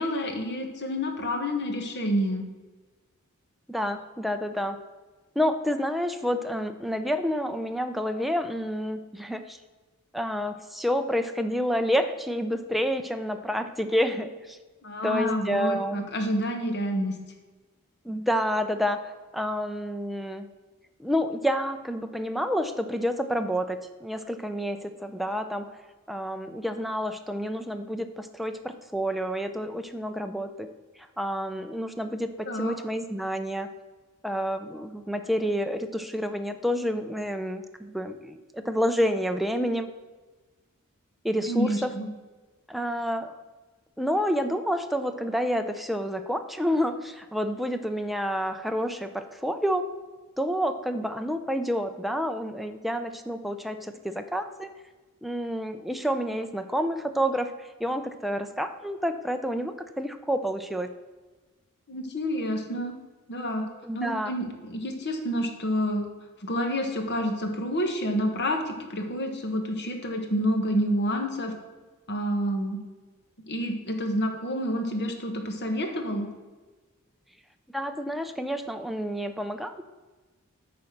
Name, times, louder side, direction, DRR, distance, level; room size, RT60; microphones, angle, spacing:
voice 1, 0.0-2.4 14.8-17.1 32.5-32.7 41.5-42.1 61.9-62.9 63.3-63.7 63.9-66.0 66.4-71.5 72.1-72.8 73.5-76.3, equal, 50° left, 4 dB, 1.3 m, -28 dB
voice 2, 3.7-4.8 5.4-9.6 10.1-14.6 15.0-16.1 18.0-20.5 21.0-25.7 26.1-30.7 31.0-33.7 34.2-39.9 41.2-41.9 42.7-43.3 44.0-49.9 50.4-54.7 55.2-57.5 57.8-60.9 63.8-64.3 77.7-79.8, equal, ahead, 7 dB, 0.5 m, -29 dB
8.5 x 4.2 x 6.5 m, 1.3 s
head